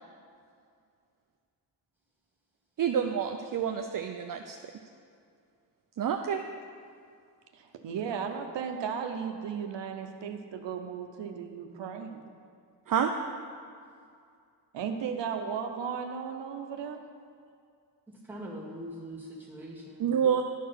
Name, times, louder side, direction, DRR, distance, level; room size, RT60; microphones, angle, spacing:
voice 1, 2.8-4.6 6.0-6.4 12.9-13.1 20.0-20.4, right 8 dB, 50° right, 5 dB, 0.5 m, -28 dB
voice 2, 7.5-12.4 14.7-17.0, right 7 dB, 90° right, 5 dB, 0.8 m, -35 dB
voice 3, 18.1-20.0, equal, 5° right, -5 dB, 2.0 m, -42 dB
12.0 x 4.6 x 5.8 m, 2.3 s
wide cardioid pair, 100°, 42 cm